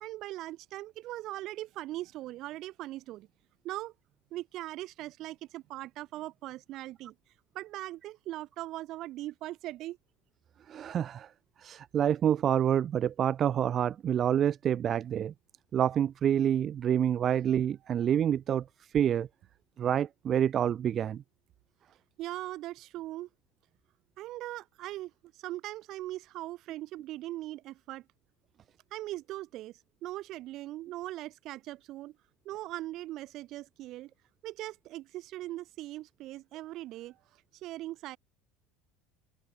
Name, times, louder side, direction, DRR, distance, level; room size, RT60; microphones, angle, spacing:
voice 1, 0.0-3.3 3.6-3.9 4.3-7.1 7.5-10.0 22.2-23.3 24.2-25.1 25.4-28.0 28.9-32.2 32.4-34.1 34.4-37.2 37.5-38.2, right 16 dB, 55° right, 1.4 m, -40 dB
voice 2, 10.7-11.3 11.6-15.3 15.7-18.6 18.9-19.3 19.8-21.2, right 9 dB, 35° right, 0.5 m, -27 dB
supercardioid pair, 120°, 0 cm